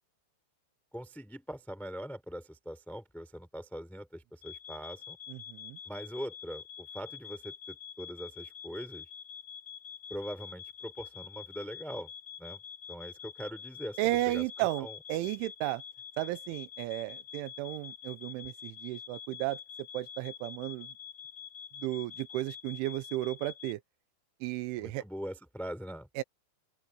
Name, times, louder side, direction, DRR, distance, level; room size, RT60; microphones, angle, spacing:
voice 1, 0.9-5.2 5.8-9.1 10.1-12.1 12.4-12.6 12.9-14.4 14.8-15.0 24.8-26.1, equal, ahead, 2.8 m, -42 dB
sound 1, 4.4-23.7, left 8 dB, 25° left, 4.9 m, -47 dB
voice 2, 5.3-5.8 14.0-15.8 16.2-19.6 19.9-20.9 21.8-23.8 24.4-25.0 26.2-26.3, right 18 dB, 85° right, 3.2 m, -34 dB
open air
omnidirectional pair, 5.5 m